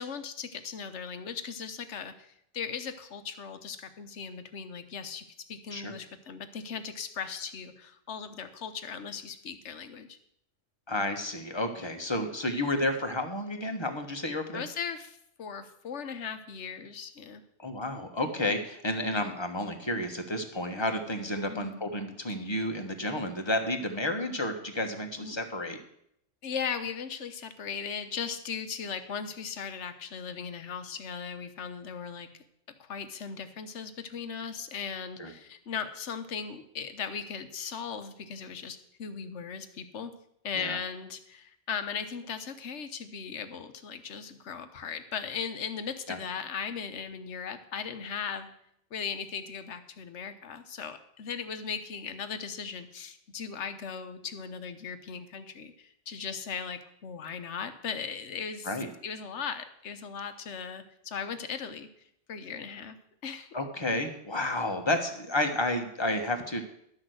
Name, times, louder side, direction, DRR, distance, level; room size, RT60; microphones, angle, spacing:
voice 1, 0.0-10.2 14.5-17.4 19.1-19.3 21.5-21.8 25.2-25.4 26.4-32.3 32.8-40.1 40.4-48.5 48.9-58.8 59.0-61.9 62.3-63.0 63.2-63.5, left 6 dB, 65° left, 9 dB, 1.3 m, -38 dB
voice 2, 10.9-14.6 17.6-25.8 35.2-35.3 40.5-40.8 46.1-46.2 58.6-58.9 63.5-66.6, left 1 dB, 20° left, 5 dB, 1.3 m, -31 dB
12.0 x 6.2 x 7.8 m, 0.73 s
omnidirectional pair, 1.3 m